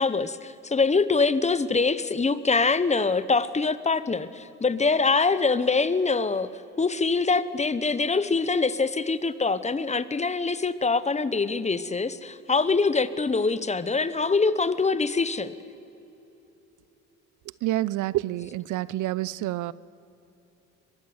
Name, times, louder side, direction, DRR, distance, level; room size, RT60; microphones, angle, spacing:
voice 1, 0.0-6.5 6.8-15.5, left 4 dB, 25° left, 15 dB, 1.0 m, -24 dB
voice 2, 17.6-19.7, right 15 dB, 80° right, 21 dB, 0.6 m, -28 dB
23.0 x 22.0 x 8.1 m, 3.0 s
cardioid pair, 90°, 30 cm